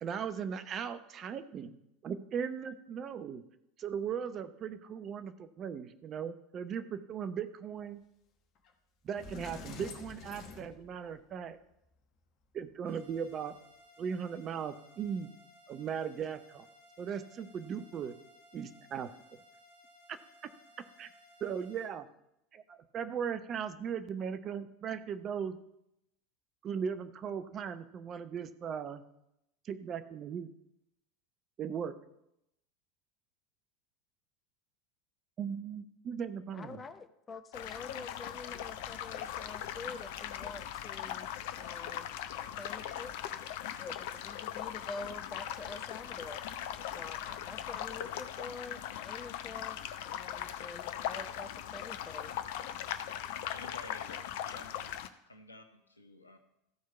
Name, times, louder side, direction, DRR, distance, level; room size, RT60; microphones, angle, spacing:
voice 1, 0.0-1.8 2.0-3.4 3.8-8.0 9.0-11.6 12.5-13.5 14.0-15.3 15.7-16.7 17.0-18.1 18.5-19.1 20.1-20.2 21.0-21.1 21.4-22.1 22.5-25.6 26.6-29.0 29.6-30.5 31.6-31.9 35.4-36.8, right 7 dB, 35° right, 11 dB, 0.7 m, -38 dB
Sliding door, 8.7-8.8 9.1-11.4, left 5 dB, 45° left, 1.3 m, -47 dB
sound 1, 12.8-21.9, left 1 dB, 90° right, 3.2 m, -60 dB
voice 2, 36.5-42.1 42.5-43.1 43.8-46.4 46.9-52.3, left 4 dB, 25° left, 10 dB, 0.9 m, -46 dB
sound 2, 37.5-55.1, left 10 dB, 60° left, 0.6 m, -40 dB
voice 3, 53.3-56.4, left 2 dB, 85° left, 6 dB, 1.0 m, -52 dB
13.5 x 4.6 x 5.6 m, 0.82 s
figure-of-eight pair, 80°, 0 cm